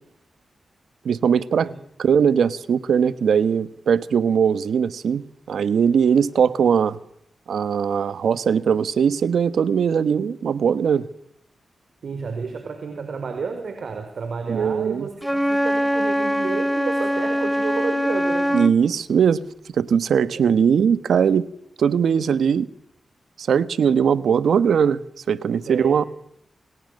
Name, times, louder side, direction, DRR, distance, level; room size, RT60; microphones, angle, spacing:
voice 1, 1.0-1.7 2.0-7.0 7.5-11.0 14.5-15.1 18.5-19.4 19.7-21.5 21.8-22.7 23.4-25.0 25.3-26.0, right 7 dB, 90° right, 16 dB, 1.3 m, -20 dB
voice 2, 12.0-18.5 20.2-20.5 25.7-26.1, right 5 dB, 70° right, 7 dB, 4.9 m, -31 dB
Wind instrument woodwind instrument, 15.2-18.8, equal, ahead, 1.9 m, -22 dB
28.5 x 28.0 x 6.6 m, 0.74 s
cardioid pair, 70°, 0 cm